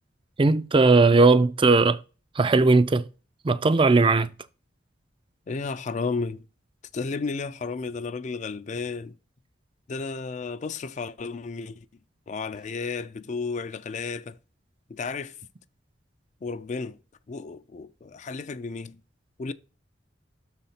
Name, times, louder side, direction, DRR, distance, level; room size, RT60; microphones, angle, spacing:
voice 1, 0.4-2.0 2.4-3.0 3.4-4.3, right 3 dB, 25° right, 0.4 m, -18 dB
voice 2, 5.5-6.4 6.9-9.1 9.9-11.9 12.3-14.4 14.9-15.3 16.4-17.0 17.3-19.0 19.4-19.5, left 4 dB, 40° left, 0.4 m, -33 dB
6.4 x 4.0 x 5.7 m
head